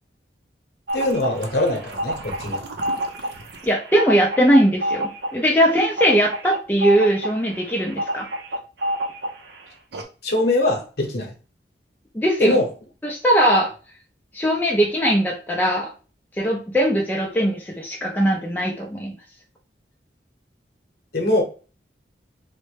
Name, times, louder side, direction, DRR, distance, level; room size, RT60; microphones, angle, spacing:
voice 1, 0.9-2.7 10.2-11.3 12.4-12.7 21.1-21.4, left 2 dB, 60° left, 2 dB, 0.9 m, -22 dB
sound 1, 0.9-9.5 9.9-10.0, right 1 dB, 70° right, 0.5 m, -28 dB
voice 2, 3.6-8.3 12.1-12.6 13.0-13.7 14.3-15.9 16.4-19.2, equal, 10° left, -2 dB, 0.4 m, -20 dB
3.2 x 2.1 x 3.1 m, 0.36 s
head